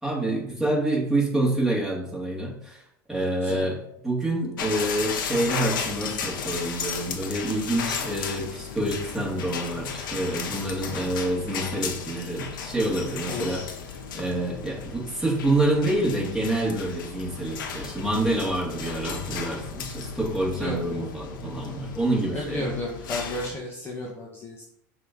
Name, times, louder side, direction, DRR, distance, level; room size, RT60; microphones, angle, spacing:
voice 1, 0.0-2.8 3.1-13.6 14.1-22.7, right 1 dB, 5° right, -4 dB, 2.7 m, -27 dB
sound 1, 4.6-23.5, left 6 dB, 90° left, 1.0 m, -35 dB
voice 2, 13.3-13.7 20.5-21.1 22.3-24.6, left 1 dB, 20° left, -2 dB, 1.3 m, -33 dB
6.7 x 3.3 x 5.3 m, 0.75 s
supercardioid pair, 105°, 11 cm